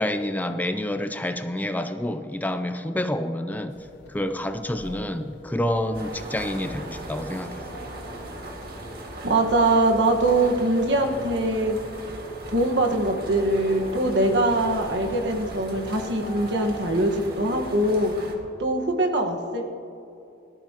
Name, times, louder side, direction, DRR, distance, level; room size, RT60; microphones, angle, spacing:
voice 1, 0.0-3.8 4.1-7.6, left 1 dB, 10° left, 8 dB, 0.5 m, -28 dB
sound 1, 3.7-16.9, equal, 80° left, 2.7 m, -44 dB
sound 2, 5.9-18.3, right 1 dB, 60° right, 2.0 m, -39 dB
voice 2, 9.2-11.8 12.5-18.1 18.6-19.6, right 2 dB, 80° right, 2 dB, 1.5 m, -22 dB
20.0 x 13.5 x 2.9 m, 2.9 s
head